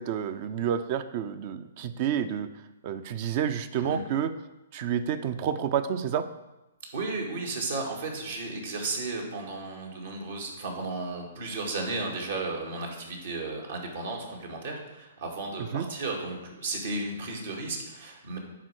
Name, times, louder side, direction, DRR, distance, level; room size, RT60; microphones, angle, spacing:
voice 1, 0.0-2.5 2.8-4.3 4.7-6.2 15.7-15.9, right 9 dB, 45° right, 12 dB, 0.7 m, -29 dB
voice 2, 6.9-18.4, right 3 dB, 65° right, 0 dB, 2.2 m, -34 dB
10.0 x 4.4 x 6.4 m, 1.0 s
hypercardioid pair, 125°, 0 cm